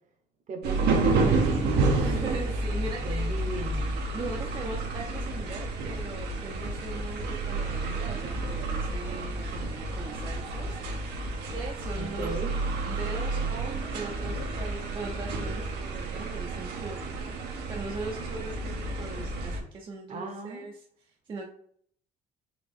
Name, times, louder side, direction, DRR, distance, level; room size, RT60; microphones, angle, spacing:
voice 1, 0.5-1.7 3.0-3.9 11.9-12.5 20.1-20.7, right 3 dB, 45° right, 5 dB, 0.8 m, -37 dB
sound 1, 0.6-19.6, right 3 dB, 75° right, 0.8 m, -30 dB
voice 2, 2.0-3.3 4.1-10.8 11.5-12.4 12.9-17.3 17.7-18.7 19.0-20.8 21.3-21.5, right 3 dB, 30° right, 0 dB, 0.5 m, -39 dB
3.8 x 2.3 x 3.5 m, 0.62 s
cardioid pair, 110°, 17 cm